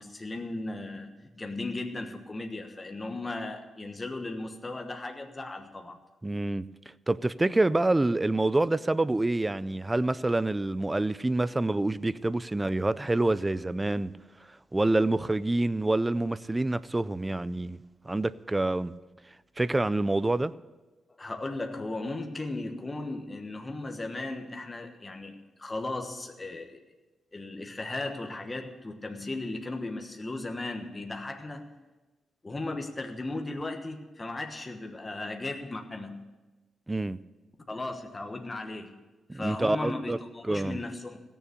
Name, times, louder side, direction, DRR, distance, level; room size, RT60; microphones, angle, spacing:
voice 1, 0.0-6.0 21.2-26.8 27.3-31.7 32.4-36.2 37.7-39.0 39.3-41.2, left 2 dB, 20° left, 1.3 m, -36 dB
voice 2, 6.2-6.7 7.1-14.1 14.7-17.8 18.1-18.9 19.6-20.5 36.9-37.2 39.3-40.2 40.5-40.8, right 2 dB, 15° right, 0.4 m, -27 dB
16.5 x 7.0 x 8.2 m
cardioid pair, 115°, 0 cm